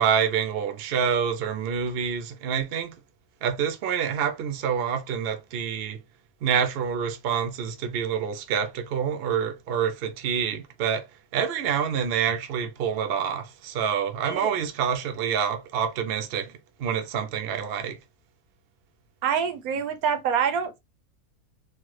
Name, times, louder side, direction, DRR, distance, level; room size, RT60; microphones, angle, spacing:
voice 1, 0.0-3.0 3.4-6.0 6.4-11.0 11.3-18.0, right 7 dB, 60° right, 0.6 m, -27 dB
voice 2, 19.2-20.8, right 7 dB, 80° right, 1.1 m, -26 dB
3.1 x 2.1 x 3.1 m
omnidirectional pair, 1.6 m